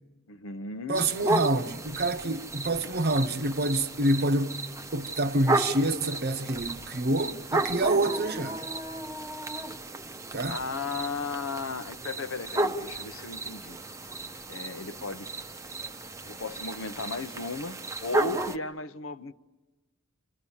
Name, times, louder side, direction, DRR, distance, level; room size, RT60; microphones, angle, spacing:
voice 1, 0.3-1.1 10.5-13.8 14.5-15.3 16.2-19.3, left 4 dB, 70° left, 0.9 m, -35 dB
sound 1, 0.9-18.6, right 2 dB, 15° right, 0.8 m, -33 dB
voice 2, 0.9-4.6 4.9-8.6 10.3-10.6, right 2 dB, 50° right, 0.9 m, -27 dB
30.0 x 27.5 x 7.1 m
head